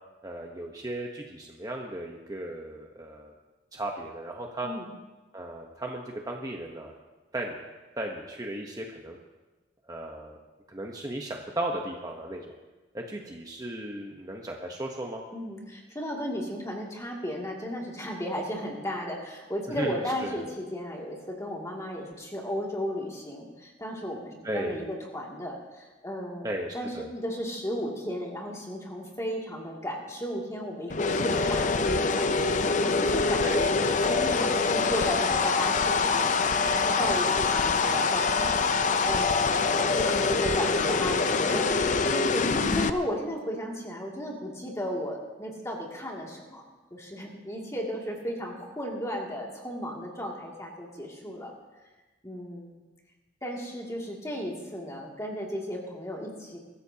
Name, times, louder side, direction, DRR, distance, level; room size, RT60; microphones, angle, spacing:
voice 1, 0.2-3.3 3.7-4.7 5.3-6.9 7.3-7.6 8.0-9.2 9.9-10.4 10.7-12.5 12.9-15.2 19.8-20.4 24.4-24.8 26.4-27.1 33.4-33.6, right 1 dB, 20° right, 1 dB, 1.0 m, -35 dB
voice 2, 15.3-33.4 33.7-33.8 34.1-42.4 42.7-46.6 46.9-51.5 52.2-52.8 53.4-56.6, equal, 15° left, -2 dB, 2.5 m, -34 dB
sound 1, 30.9-42.9, left 4 dB, 45° left, 0.6 m, -25 dB
22.0 x 14.0 x 2.9 m, 1.2 s
head